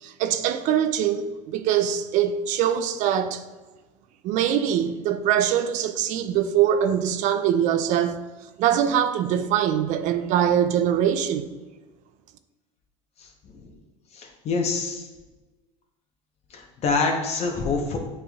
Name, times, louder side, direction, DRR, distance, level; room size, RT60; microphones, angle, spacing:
voice 1, 0.0-3.4 4.2-8.2 8.6-11.5, right 9 dB, 55° right, 0.4 m, -23 dB
voice 2, 14.1-15.1 16.5-18.0, left 4 dB, 45° left, 0.9 m, -26 dB
7.1 x 3.2 x 2.3 m
supercardioid pair, 105°, 15 cm